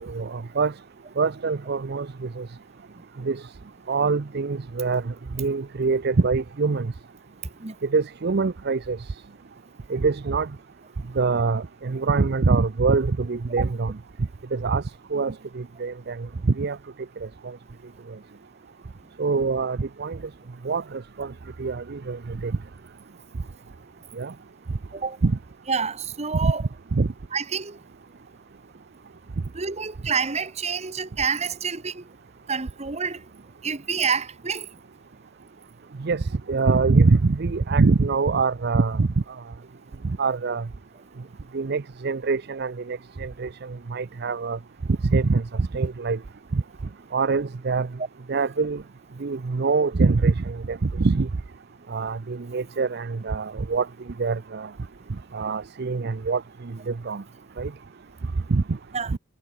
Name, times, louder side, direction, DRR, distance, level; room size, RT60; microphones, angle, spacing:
voice 1, 0.0-0.7 1.2-2.5 3.2-3.4 3.9-6.9 7.9-9.0 9.9-10.5 11.2-13.9 14.5-14.8 15.1-16.8 19.2-20.2 20.6-21.3 21.6-22.5 24.2-24.3 25.2-25.4 26.4-26.5 26.9-27.1 36.0-39.1 40.0-40.7 41.5-44.6 45.0-46.2 46.5-46.6 47.1-47.9 48.3-48.8 49.2-51.3 51.9-53.9 54.2-54.7 55.3-56.4 56.9-57.2 57.6-57.7 58.5-58.8 59.1-59.2, right 4 dB, 50° right, 0.6 m, -24 dB
voice 2, 25.7-26.6 27.3-27.8 29.5-32.0 32.5-33.2 33.6-34.7 58.9-59.1, right 5 dB, 30° right, 1.1 m, -28 dB
head